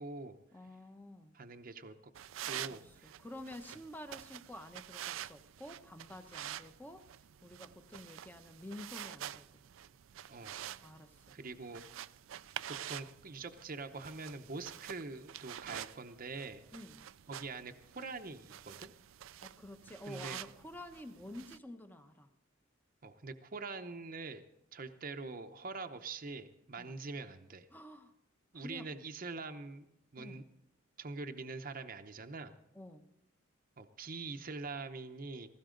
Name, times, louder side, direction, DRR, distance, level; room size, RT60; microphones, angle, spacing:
voice 1, 0.0-0.4 1.3-2.1 2.5-3.1 10.3-10.6 11.3-11.8 12.9-16.6 17.3-18.9 20.1-20.4 23.0-24.4 24.7-27.7 28.5-29.9 30.1-30.4 31.0-32.5 33.8-35.5, right 3 dB, 45° right, 6 dB, 0.8 m, -44 dB
voice 2, 0.5-1.4 2.4-7.1 7.4-9.6 10.8-11.4 16.7-17.1 19.4-22.3 26.8-27.0 27.7-28.1 28.5-28.9 30.2-30.4 32.7-33.1, left 1 dB, 10° left, 7 dB, 1.0 m, -50 dB
sound 1, 2.1-21.6, right 11 dB, 75° right, 0.4 m, -48 dB
18.0 x 15.5 x 3.9 m, 0.82 s
head